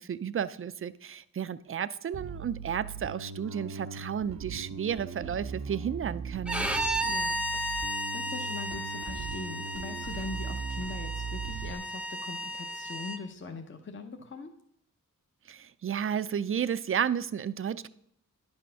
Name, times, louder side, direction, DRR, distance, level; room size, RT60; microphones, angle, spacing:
voice 1, 0.0-6.7 15.5-17.9, right 8 dB, 40° right, 15 dB, 0.4 m, -32 dB
Bass guitar, 2.1-11.7, right 6 dB, 85° right, 0.8 m, -39 dB
Bowed string instrument, 6.5-13.2, equal, 5° right, 0.7 m, -34 dB
voice 2, 6.8-14.5, left 4 dB, 35° left, 4 dB, 0.8 m, -42 dB
10.5 x 6.2 x 5.6 m, 0.73 s
wide cardioid pair, 90°, 33 cm